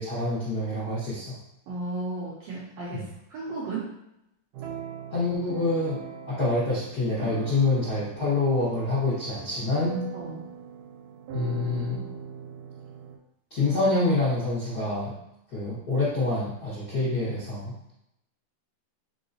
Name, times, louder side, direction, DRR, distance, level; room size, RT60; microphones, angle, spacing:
voice 1, 0.0-1.4 2.9-3.0 5.1-10.0 11.3-12.0 13.5-15.1 15.5-17.9, left 2 dB, 55° left, -11 dB, 1.0 m, -27 dB
voice 2, 1.7-4.0 10.1-10.4, right 2 dB, 70° right, -6 dB, 1.7 m, -34 dB
sound 1, 4.5-13.2, right 7 dB, 90° right, 2.3 m, -40 dB
4.8 x 3.8 x 2.6 m, 0.82 s
omnidirectional pair, 3.7 m